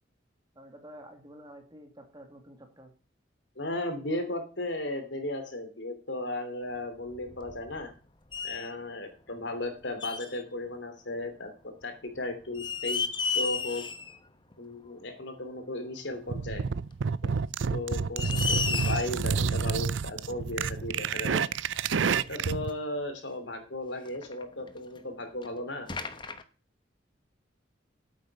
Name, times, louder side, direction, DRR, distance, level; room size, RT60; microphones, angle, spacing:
voice 1, 0.5-2.9, equal, 20° right, 5 dB, 2.4 m, -49 dB
voice 2, 3.5-7.9 8.4-13.0 13.3-13.8 14.6-16.6 17.2-17.3 17.7-21.4 22.1-25.9, left 1 dB, 70° left, 6 dB, 3.1 m, -35 dB
sound 1, 7.1-8.0 8.3-8.7 10.0-10.4 11.8-11.9 12.4-14.2 14.5-14.6 16.1-16.2 17.2-17.3 17.8-17.9 18.1-19.2 20.5-20.6 21.4-21.5 21.7-21.8 22.5-22.7 24.0-25.0 25.4-25.5 25.9-26.4, left 5 dB, 25° left, 1.0 m, -33 dB
sound 2, 16.3-22.7, right 5 dB, 80° right, 0.5 m, -29 dB
9.3 x 8.5 x 8.2 m, 0.37 s
head